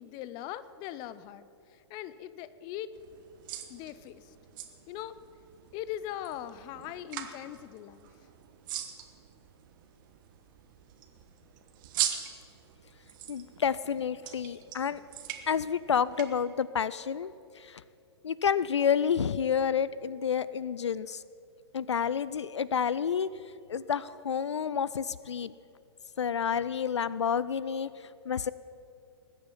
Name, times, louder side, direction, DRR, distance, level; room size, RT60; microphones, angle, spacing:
voice 1, 0.0-2.9 3.7-4.2 4.9-5.2 5.7-8.1, left 12 dB, 30° left, 15 dB, 0.6 m, -40 dB
sound 1, 2.9-16.2, right 11 dB, 45° right, 1.3 m, -41 dB
voice 2, 13.3-15.0 15.5-17.8 18.2-21.2 21.7-23.3 23.7-25.5 26.2-27.9 28.3-28.5, left 7 dB, 80° left, 18 dB, 0.4 m, -29 dB
20.0 x 9.0 x 5.5 m, 2.6 s
figure-of-eight pair, 115°, 15 cm